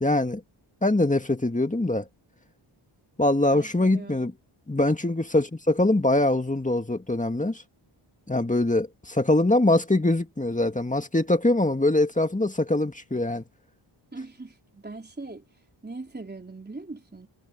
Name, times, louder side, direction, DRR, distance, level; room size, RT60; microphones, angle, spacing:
voice 1, 0.0-0.4 0.8-2.0 3.2-4.3 4.7-7.6 8.3-13.4, left 2 dB, 15° left, 2.0 m, -23 dB
voice 2, 3.5-4.3 14.1-15.4 15.8-17.3, right 3 dB, 20° right, 3.7 m, -40 dB
wide cardioid pair, 90°, 50 cm